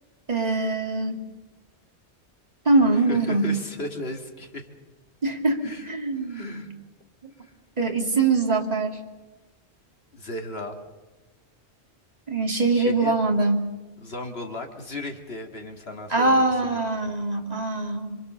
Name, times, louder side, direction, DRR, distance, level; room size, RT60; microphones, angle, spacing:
voice 1, 0.3-1.2 2.7-3.4 5.2-6.7 7.8-9.0 12.3-13.7 16.1-18.2, right 3 dB, 35° right, 2 dB, 2.6 m, -23 dB
voice 2, 3.0-4.7 5.6-5.9 6.2-6.7 7.4-7.5 10.1-10.8 12.7-13.1 14.0-16.9, left 1 dB, 60° left, 3 dB, 2.4 m, -36 dB
27.0 x 24.0 x 6.8 m, 1.2 s
omnidirectional pair, 1.2 m